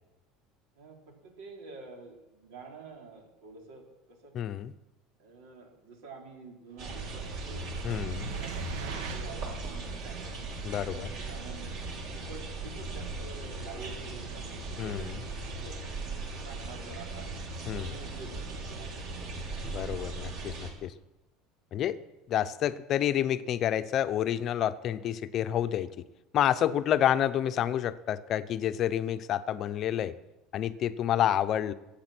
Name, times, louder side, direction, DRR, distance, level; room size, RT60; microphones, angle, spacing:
voice 1, 0.8-4.3 5.2-10.3 10.8-11.8 12.1-16.0 16.4-17.3 17.7-19.6, right 3 dB, 85° right, 1 dB, 4.3 m, -48 dB
voice 2, 4.3-4.7 7.8-8.3 10.6-11.1 14.8-15.2 17.7-17.9 19.6-20.9 21.7-22.0 22.3-25.9 26.3-30.1 30.5-31.7, left 10 dB, 35° left, 11 dB, 0.7 m, -29 dB
sound 1, 6.8-20.7, right 3 dB, 45° right, 3.2 m, -38 dB
sound 2, 7.0-9.6, right 5 dB, 70° right, 1.6 m, -39 dB
23.5 x 8.8 x 6.1 m, 1.0 s
cardioid pair, 170°, 0 cm